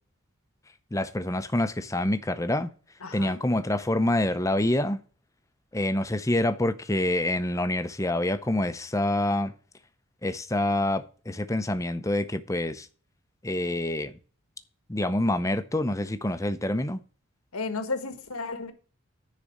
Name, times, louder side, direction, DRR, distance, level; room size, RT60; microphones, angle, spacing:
voice 1, 0.9-2.7 3.1-5.0 5.7-9.5 10.2-12.9 13.4-14.1 14.9-17.0, left 1 dB, 15° left, 0.6 m, -26 dB
voice 2, 3.0-3.4 17.5-18.7, left 3 dB, 85° left, 1.5 m, -33 dB
10.0 x 4.2 x 7.3 m
head